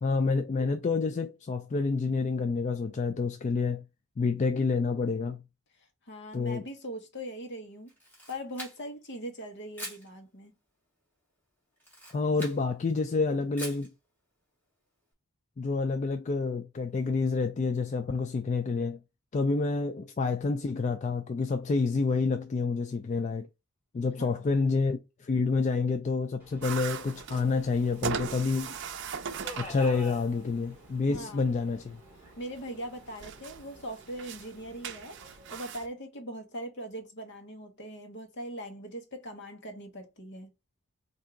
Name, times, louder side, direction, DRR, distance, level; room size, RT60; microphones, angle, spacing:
voice 1, 0.0-3.8 4.2-5.4 6.3-6.6 12.1-13.9 15.6-19.0 19.3-23.5 23.9-28.7 29.6-32.0, left 4 dB, 35° left, 0.3 m, -28 dB
voice 2, 6.1-7.9 8.3-10.5 24.2-24.6 31.1-31.6 32.4-40.5, equal, 55° left, 1.2 m, -41 dB
Camera, 7.9-9.1 9.7-10.1 11.8-12.6 13.6-13.9, equal, 10° left, 2.1 m, -42 dB
Subway metro underground, 26.4-35.6, left 1 dB, 10° right, 2.3 m, -50 dB
sound 1, 26.6-35.9, right 6 dB, 55° right, 0.5 m, -40 dB
4.4 x 2.7 x 3.7 m
head